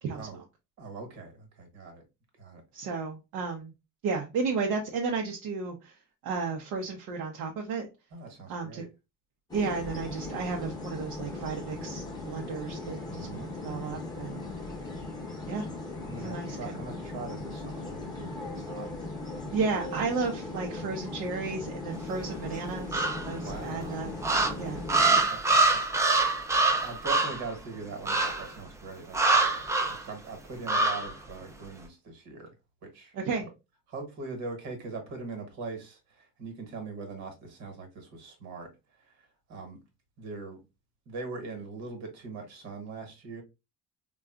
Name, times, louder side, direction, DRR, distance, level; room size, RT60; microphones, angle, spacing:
voice 1, 0.8-2.0 2.4-2.6 8.1-8.9 13.1-13.5 16.0-18.9 23.4-24.0 25.3-29.6 29.9-32.5 32.8-33.1 33.9-38.7 39.2-39.8 40.2-40.6 41.1-43.4, right 4 dB, 55° right, 1.3 m, -41 dB
voice 2, 2.7-3.7 4.0-5.9 6.2-7.9 8.5-8.8 9.5-14.4 15.4-15.7 16.2-16.7 19.5-24.1 24.6-24.8 33.1-33.5, right 4 dB, 75° right, 0.7 m, -33 dB
sound 1, 9.5-25.2, left 2 dB, 10° left, 0.8 m, -38 dB
sound 2, 22.9-23.5 24.2-27.5 28.1-28.5 29.1-30.0 30.7-31.1, right 3 dB, 10° right, 0.4 m, -24 dB
3.7 x 2.3 x 2.3 m
cardioid pair, 145°, 31 cm